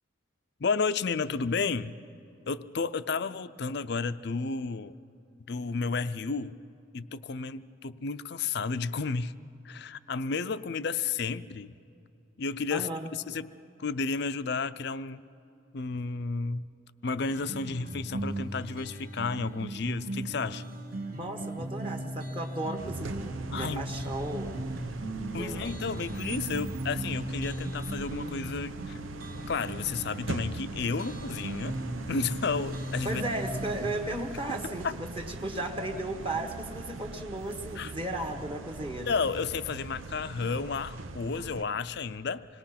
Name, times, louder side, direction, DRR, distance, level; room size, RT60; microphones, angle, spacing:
voice 1, 0.6-2.0 2.5-5.0 5.5-6.6 6.9-9.3 9.6-11.7 12.4-15.2 15.7-16.6 17.0-20.6 23.5-23.8 25.3-29.0 29.5-31.7 32.1-33.2 34.8-34.9 37.8-37.9 39.1-42.5, left 4 dB, 55° left, 13 dB, 0.5 m, -32 dB
voice 2, 12.7-13.1 21.2-24.6 25.3-25.7 33.0-39.1, right 1 dB, 25° right, 4 dB, 1.4 m, -35 dB
sound 1, 17.2-34.0, right 1 dB, 45° right, 1.6 m, -38 dB
sound 2, 22.8-41.6, right 3 dB, 85° right, 0.8 m, -41 dB
26.5 x 20.5 x 5.8 m, 2.6 s
head